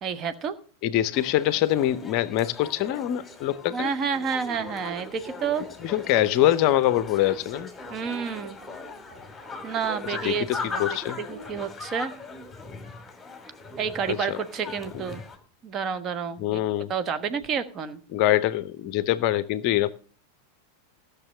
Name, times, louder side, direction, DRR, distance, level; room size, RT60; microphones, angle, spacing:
voice 1, 0.0-0.6 3.7-5.6 7.9-8.6 9.6-10.8 11.2-12.1 13.8-15.2 15.6-16.6 16.9-18.0, right 6 dB, 30° right, 10 dB, 1.3 m, -29 dB
voice 2, 0.8-3.9 5.8-7.7 10.1-11.2 14.1-14.4 14.9-15.0 16.4-16.9 18.1-19.9, left 13 dB, 45° left, 17 dB, 0.6 m, -24 dB
sound 1, 1.1-15.4, left 3 dB, 10° left, 2.6 m, -39 dB
sound 2, 4.8-11.6, equal, 55° right, 5.4 m, -52 dB
15.0 x 6.6 x 6.5 m, 0.41 s
figure-of-eight pair, 90°, 0 cm